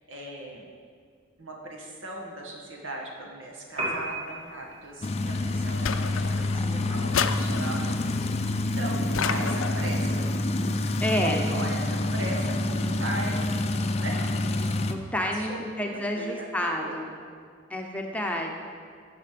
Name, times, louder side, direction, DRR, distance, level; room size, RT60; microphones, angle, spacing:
voice 1, 0.1-0.7 1.4-8.1 8.4-10.3 11.0-13.7 14.0-14.3 15.2-17.0, right 1 dB, 80° right, -1 dB, 1.9 m, -38 dB
Piano, 3.7-11.7, right 2 dB, 30° right, 2.3 m, -41 dB
sound 1, 5.0-14.9, left 2 dB, 35° left, 0.5 m, -27 dB
sound 2, 5.9-6.6 7.1-8.0 9.1-10.0, left 7 dB, 85° left, 0.5 m, -30 dB
voice 2, 11.0-11.4 14.9-17.1 17.7-18.5, left 1 dB, 5° left, 1 dB, 0.8 m, -29 dB
12.5 x 6.8 x 5.2 m, 2.1 s
head